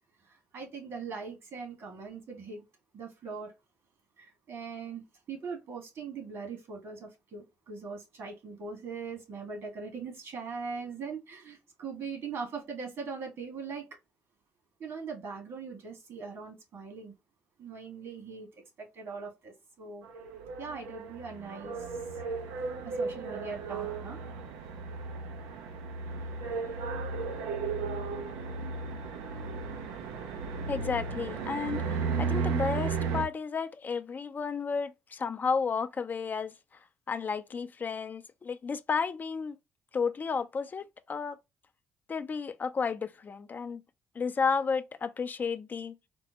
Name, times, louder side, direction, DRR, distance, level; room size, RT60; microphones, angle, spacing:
voice 1, 0.2-2.6 2.9-3.5 4.2-5.0 5.3-13.9 14.8-17.1 17.6-18.5 18.8-20.0 20.6-22.0 22.8-24.2, right 5 dB, 60° right, 1.7 m, -41 dB
sound 1, 20.0-33.2, right 4 dB, 85° right, 0.6 m, -34 dB
voice 2, 30.7-36.5 37.1-39.6 39.9-41.4 42.1-43.8 44.2-46.0, left 5 dB, 40° left, 0.4 m, -32 dB
4.3 x 2.0 x 2.9 m
supercardioid pair, 60°, 5 cm